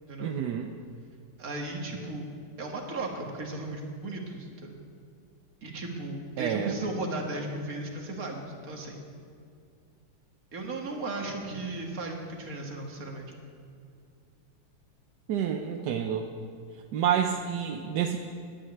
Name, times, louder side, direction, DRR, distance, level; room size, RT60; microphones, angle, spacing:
voice 1, 0.2-0.7 6.4-6.7 15.3-16.3 16.9-18.2, right 9 dB, 65° right, 4 dB, 1.1 m, -28 dB
voice 2, 1.4-2.3 2.6-4.7 5.6-9.0 10.5-13.3, right 2 dB, 45° right, 0 dB, 2.1 m, -36 dB
11.0 x 9.0 x 9.5 m, 2.4 s
omnidirectional pair, 2.4 m